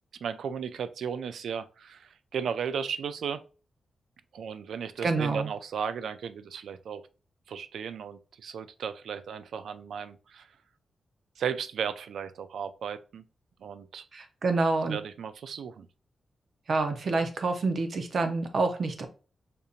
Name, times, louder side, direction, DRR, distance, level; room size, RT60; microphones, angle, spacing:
voice 1, 0.2-3.4 4.3-7.0 7.5-10.5 11.4-13.2 13.6-14.1 14.9-15.9, right 7 dB, 90° right, 0.3 m, -35 dB
voice 2, 5.0-5.5 14.1-15.0 16.7-19.1, right 3 dB, 50° right, 0.6 m, -27 dB
5.1 x 2.8 x 2.4 m
wide cardioid pair, 140°, 0 cm